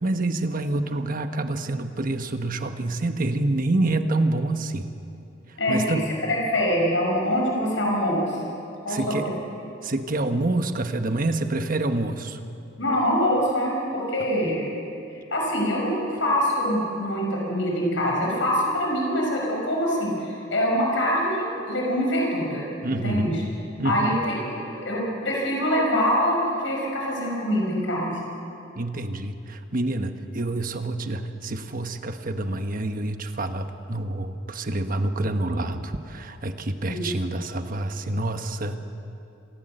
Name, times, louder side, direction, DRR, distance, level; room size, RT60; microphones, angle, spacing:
voice 1, 0.0-4.9 5.7-6.0 8.9-9.3 9.8-12.4 22.8-23.4 23.8-24.2 28.8-39.0, right 2 dB, 50° right, 8 dB, 1.2 m, -27 dB
voice 2, 5.6-5.9 6.3-8.4 8.8-9.3 12.8-14.7 15.3-22.6 23.0-23.4 23.8-28.1 36.9-37.0, equal, 85° left, -2 dB, 5.9 m, -24 dB
27.0 x 15.5 x 7.9 m, 2.7 s
head